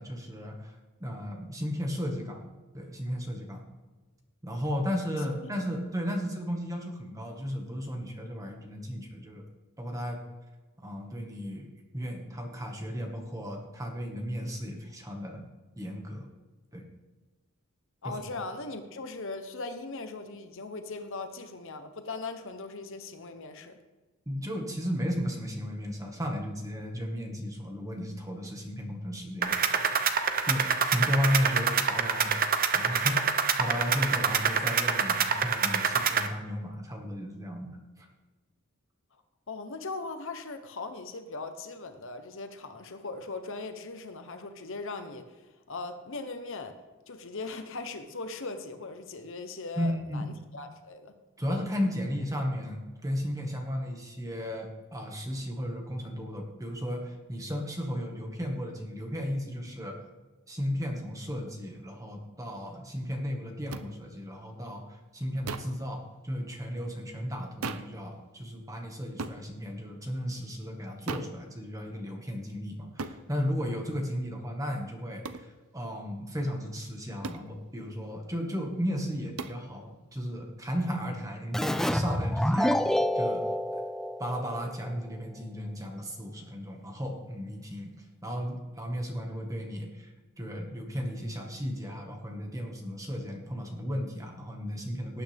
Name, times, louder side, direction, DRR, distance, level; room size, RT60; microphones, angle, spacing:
voice 1, 0.0-2.4 2.7-3.6 4.4-9.5 9.8-10.2 10.8-15.4 15.8-16.3 16.7-16.9 18.0-18.2 24.3-32.4 32.7-38.1 49.8-50.3 51.4-60.0 60.5-83.5 84.2-87.9 88.2-95.2, equal, 15° right, 1 dB, 1.8 m, -34 dB
voice 2, 18.0-23.8 39.5-45.4 45.7-46.8 47.1-51.1, left 3 dB, 60° left, 8 dB, 1.0 m, -39 dB
sound 1, 29.4-36.3, right 6 dB, 40° right, 0.8 m, -26 dB
sound 2, 63.7-63.9 65.5-65.8 67.6-68.0 69.2-69.4 71.1-71.4 73.0-73.2 75.2-75.5 77.2-77.5 79.4-79.6, right 4 dB, 75° right, 0.7 m, -36 dB
Keyboard (musical), 81.5-84.9, equal, ahead, 0.4 m, -28 dB
18.5 x 8.9 x 3.6 m, 1.2 s
head